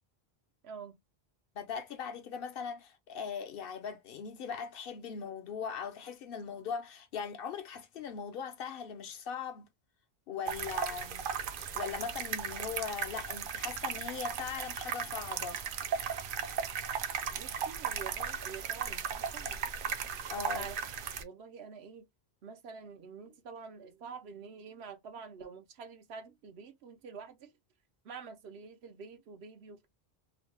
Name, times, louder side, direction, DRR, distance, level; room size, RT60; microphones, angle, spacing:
voice 1, 0.6-1.0 17.3-19.6 20.3-20.9 21.2-22.1 22.4-27.5 28.0-29.9, right 5 dB, 85° right, 0.9 m, -47 dB
voice 2, 1.6-9.7 10.3-11.3 11.7-15.7 20.3-20.7, left 6 dB, 65° left, 0.8 m, -40 dB
sound 1, 10.5-21.2, right 7 dB, 65° right, 0.7 m, -36 dB
2.9 x 2.0 x 3.2 m
omnidirectional pair, 1.0 m